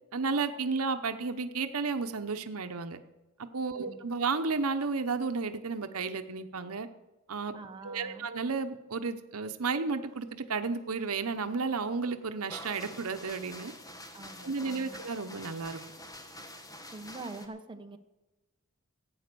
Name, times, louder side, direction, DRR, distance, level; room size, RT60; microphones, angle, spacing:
voice 1, 0.1-3.0 3.5-6.9 7.3-7.5 7.8-13.7 14.4-15.8, right 4 dB, 80° right, 9 dB, 0.9 m, -32 dB
voice 2, 7.5-8.3 14.1-15.0 16.9-18.0, right 3 dB, 20° right, 5 dB, 0.9 m, -45 dB
sound 1, 12.5-17.5, left 1 dB, 15° left, 1.4 m, -47 dB
15.0 x 8.8 x 6.9 m, 1.1 s
head